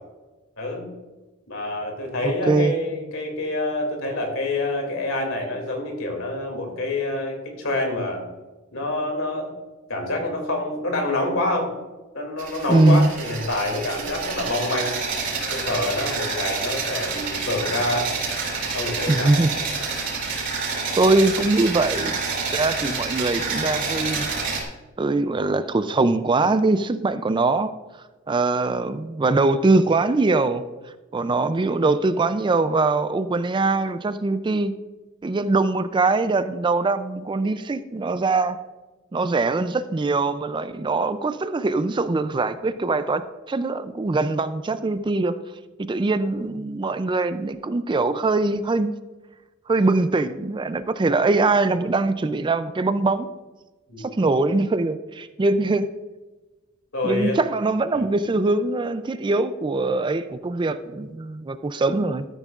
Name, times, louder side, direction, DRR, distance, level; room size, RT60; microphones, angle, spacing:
voice 1, 0.6-0.9 1.5-8.2 8.7-9.5 9.9-11.7 12.1-14.9 15.5-18.1 18.7-19.3 53.9-54.1 56.9-57.4 57.9-58.1, left 2 dB, 75° left, 3 dB, 2.5 m, -27 dB
voice 2, 2.2-2.7 12.7-13.1 19.1-19.5 21.0-22.2 22.5-24.3 25.0-27.7 28.3-30.6 31.1-34.7 35.2-38.6 39.1-45.3 45.9-48.9 49.7-53.3 54.0-55.9 57.0-62.3, right 3 dB, 25° right, 12 dB, 0.4 m, -22 dB
sound 1, 12.4-24.6, right 4 dB, 60° right, 3.3 m, -28 dB
13.5 x 9.0 x 2.4 m, 1.2 s
head